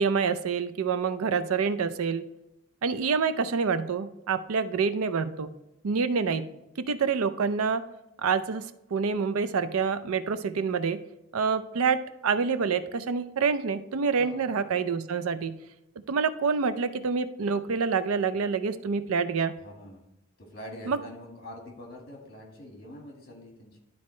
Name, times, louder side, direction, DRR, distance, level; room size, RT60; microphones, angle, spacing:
voice 1, 0.0-2.2 2.8-5.5 5.8-6.5 6.8-7.8 8.2-11.0 11.3-15.6 16.1-19.5 20.9-21.0, right 5 dB, 90° right, 13 dB, 0.5 m, -27 dB
voice 2, 19.6-20.0 20.4-23.8, left 1 dB, 45° left, 0 dB, 1.8 m, -44 dB
11.5 x 4.2 x 3.2 m, 0.90 s
head